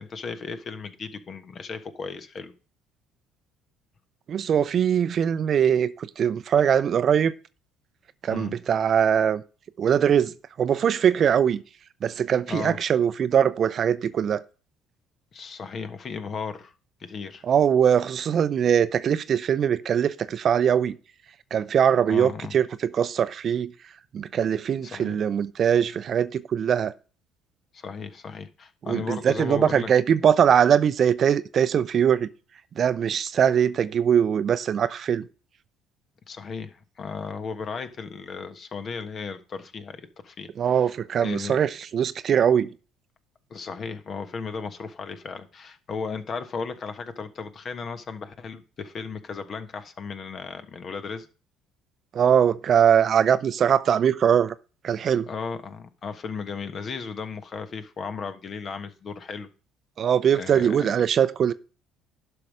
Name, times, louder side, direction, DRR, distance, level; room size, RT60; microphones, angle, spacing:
voice 1, 0.0-2.5 8.3-8.6 12.5-12.8 15.3-16.7 17.0-17.4 22.1-22.6 24.8-25.2 27.7-29.9 36.3-40.9 41.2-41.6 43.5-51.3 55.3-59.5 60.4-60.8, left 5 dB, 45° left, 1.3 m, -35 dB
voice 2, 4.3-7.3 8.2-9.4 9.8-11.6 12.0-14.4 17.4-21.0 21.5-23.7 24.1-26.9 28.9-32.3 32.8-35.2 40.6-42.7 52.1-54.5 54.8-55.3 60.0-61.5, right 8 dB, 50° right, 0.6 m, -22 dB
11.5 x 5.7 x 4.9 m
hypercardioid pair, 60°, 0 cm